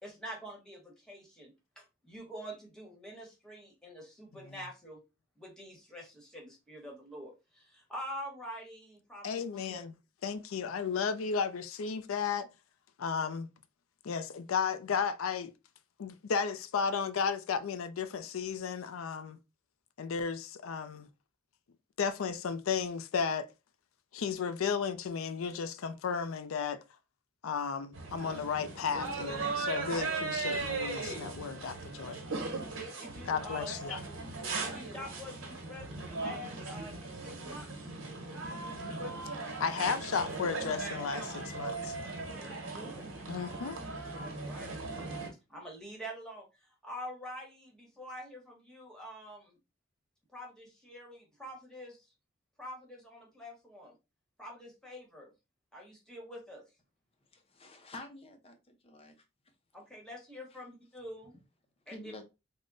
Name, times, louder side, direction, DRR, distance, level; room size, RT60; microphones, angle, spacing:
voice 1, 0.0-5.0 5.4-9.8 33.0-34.0 34.6-37.9 42.3-43.0 44.1-44.7 45.5-49.6 50.3-52.1 52.6-54.0 54.4-55.3 55.7-56.6 59.7-61.4 61.9-62.1, equal, 5° left, 1.1 m, -46 dB
voice 2, 9.2-9.9 10.2-12.5 13.0-13.5 14.0-15.5 16.0-19.4 20.0-21.1 22.0-23.5 24.1-26.8 27.4-32.2 33.3-34.0 39.6-42.0 43.3-43.8, left 6 dB, 90° left, 0.4 m, -34 dB
sound 1, 27.9-45.3, right 3 dB, 70° right, 1.1 m, -38 dB
voice 3, 57.3-59.2 61.9-62.2, left 2 dB, 30° left, 0.5 m, -49 dB
3.6 x 2.1 x 3.8 m
head